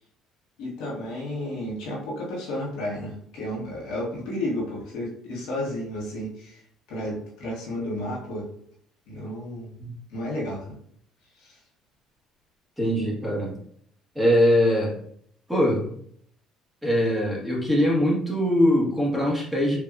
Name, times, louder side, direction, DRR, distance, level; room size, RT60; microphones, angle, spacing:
voice 1, 0.6-6.6 6.9-8.5 9.1-9.7 10.1-10.8 11.4-11.6 13.0-13.1, left 1 dB, 75° left, -3 dB, 1.0 m, -32 dB
voice 2, 12.8-13.6 14.1-14.9 15.5-15.9 16.8-19.8, equal, 5° right, -4 dB, 1.1 m, -22 dB
3.4 x 2.3 x 2.4 m, 0.65 s
supercardioid pair, 80°, 0 cm